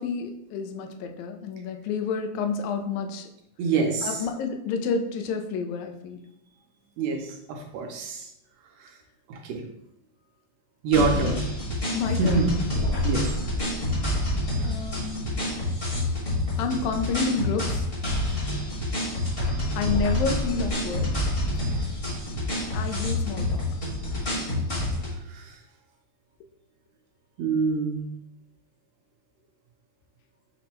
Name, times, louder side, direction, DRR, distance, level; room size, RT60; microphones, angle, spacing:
voice 1, 0.0-3.3 4.0-6.2 11.0-11.4 11.9-12.4 14.6-15.3 16.6-17.9 19.8-21.1 22.7-23.8, left 5 dB, 85° left, 4 dB, 1.9 m, -29 dB
voice 2, 3.6-4.1 7.0-8.3 9.3-9.6 10.8-11.4 12.2-12.6 13.0-13.3 25.3-25.5 27.4-28.1, right 4 dB, 75° right, 2 dB, 1.8 m, -25 dB
sound 1, 10.9-25.1, left 1 dB, 35° left, 0.9 m, -28 dB
5.9 x 2.1 x 4.2 m, 0.78 s
omnidirectional pair, 3.3 m